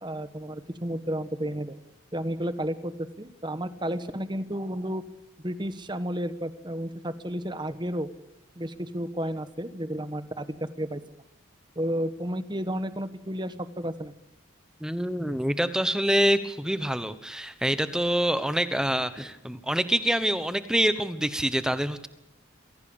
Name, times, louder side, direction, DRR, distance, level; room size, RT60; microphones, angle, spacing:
voice 1, 0.0-1.8 2.1-5.0 5.4-8.1 8.6-11.0 11.8-14.1, equal, 20° right, 12 dB, 1.2 m, -32 dB
voice 2, 14.8-22.1, equal, 5° right, 12 dB, 1.0 m, -26 dB
24.0 x 17.0 x 8.7 m, 0.85 s
head